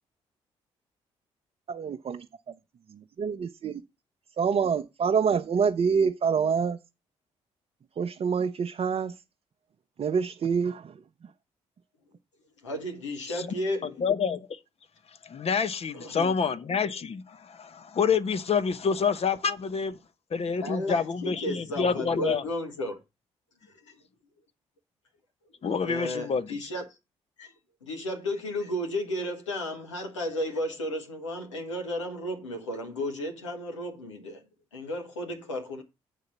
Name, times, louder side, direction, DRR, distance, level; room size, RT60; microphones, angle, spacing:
voice 1, 1.7-2.2 3.2-3.8 4.4-6.8 8.0-9.1 10.0-10.9, right 6 dB, 40° right, 0.7 m, -26 dB
voice 2, 12.6-13.9 15.9-16.3 20.6-23.0 23.9-24.0 25.8-26.8 27.4-27.5 27.8-34.4 34.7-35.8, left 1 dB, 85° left, 1.3 m, -33 dB
voice 3, 13.8-14.6 15.2-20.0 20.3-22.4 25.6-26.6, left 6 dB, 40° left, 0.9 m, -28 dB
8.2 x 3.9 x 6.7 m
figure-of-eight pair, 40°, 15 cm